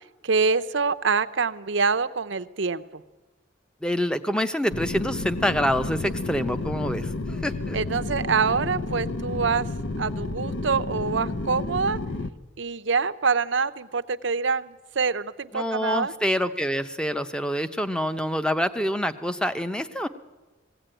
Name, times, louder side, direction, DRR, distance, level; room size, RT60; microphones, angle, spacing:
voice 1, 0.2-2.8 7.7-9.7 10.0-12.0 12.6-16.1, right 5 dB, 70° right, 12 dB, 0.7 m, -25 dB
voice 2, 3.8-7.8 15.5-20.1, equal, 5° left, 10 dB, 0.7 m, -26 dB
sound 1, 4.7-12.3, left 2 dB, 70° left, 0.8 m, -31 dB
20.0 x 16.0 x 9.0 m, 1.2 s
head